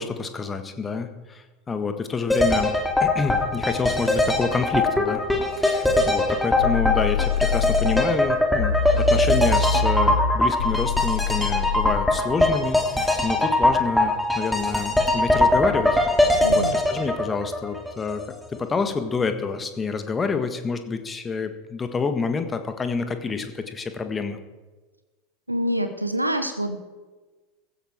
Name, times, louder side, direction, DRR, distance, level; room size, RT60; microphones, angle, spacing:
voice 1, 0.0-2.7 3.0-5.2 5.6-8.8 9.1-15.9 16.3-18.2 18.6-24.4, left 4 dB, 20° left, 8 dB, 1.6 m, -28 dB
sound 1, 2.3-18.2 18.5-18.6, left 1 dB, 5° left, 2.6 m, -21 dB
sound 2, 6.6-8.1 8.6-12.1, left 5 dB, 70° left, 1.0 m, -24 dB
voice 2, 16.4-16.7 25.5-26.8, equal, 90° right, 8 dB, 1.0 m, -26 dB
15.5 x 13.5 x 4.6 m, 1.2 s
figure-of-eight pair, 80°, 0 cm